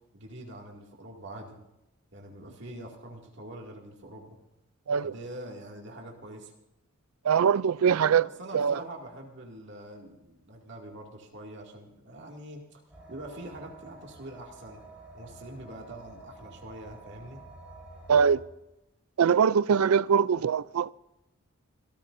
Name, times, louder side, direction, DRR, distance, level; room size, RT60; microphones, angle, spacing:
voice 1, 0.1-1.6 2.1-4.4 5.0-6.5 7.8-8.1 8.4-12.8 13.1-14.8 15.1-17.4, right 1 dB, 55° right, 2.4 m, -44 dB
voice 2, 7.2-8.2 8.5-8.8 18.1-18.4 19.2-20.9, right 7 dB, 85° right, 0.4 m, -22 dB
sound 1, 12.9-18.4, right 2 dB, 5° right, 5.6 m, -49 dB
26.0 x 14.0 x 2.7 m
head